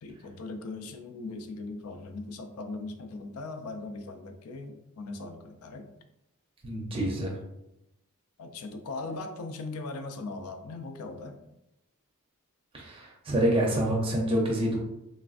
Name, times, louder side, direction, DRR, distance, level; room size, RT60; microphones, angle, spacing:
voice 1, 0.0-5.9 8.4-11.4, left 3 dB, 70° left, 5 dB, 0.4 m, -39 dB
voice 2, 6.6-7.3 12.7-14.8, right 1 dB, 25° right, -2 dB, 0.6 m, -27 dB
3.3 x 2.5 x 2.4 m, 0.88 s
head